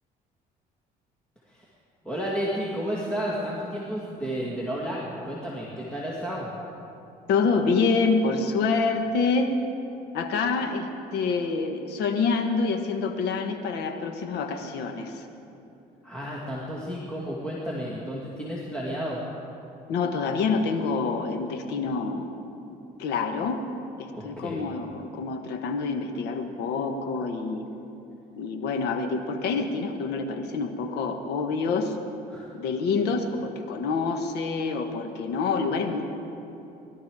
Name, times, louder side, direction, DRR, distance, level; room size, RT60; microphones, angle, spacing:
voice 1, 2.0-6.5 16.0-19.2 24.2-24.7 32.3-32.5, equal, 5° left, -6 dB, 2.2 m, -32 dB
voice 2, 7.3-9.5 10.1-15.2 19.9-22.3 22.7-23.6 24.0-27.7 28.4-32.0 32.5-36.1, left 4 dB, 80° left, 6 dB, 1.4 m, -27 dB
19.5 x 12.5 x 4.8 m, 2.9 s
cardioid pair, 110°, 17 cm